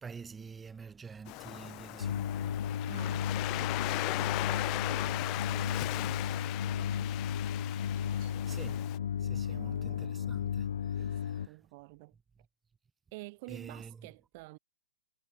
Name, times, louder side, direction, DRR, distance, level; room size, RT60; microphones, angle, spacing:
voice 1, 0.0-2.6 8.4-8.9 9.2-11.5 13.5-14.0, right 5 dB, 10° right, 1.6 m, -48 dB
Waves surf, 1.3-9.0, left 25 dB, 35° left, 0.4 m, -38 dB
sound 1, 2.0-11.5, left 8 dB, 75° left, 0.7 m, -34 dB
voice 2, 2.8-7.1 8.0-8.4 9.3-10.3 11.0-12.2 13.1-14.6, right 26 dB, 40° right, 5.0 m, -51 dB
hypercardioid pair, 145°, 0 cm